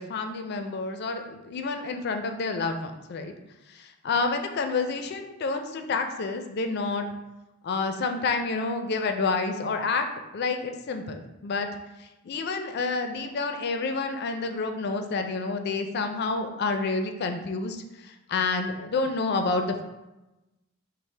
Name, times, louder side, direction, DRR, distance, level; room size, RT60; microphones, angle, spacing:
voice 1, 0.0-3.3 3.7-7.1 7.6-10.1 10.3-11.7 12.0-19.8, left 4 dB, 50° left, 6 dB, 0.4 m, -29 dB
5.7 x 2.0 x 3.2 m, 1.0 s
head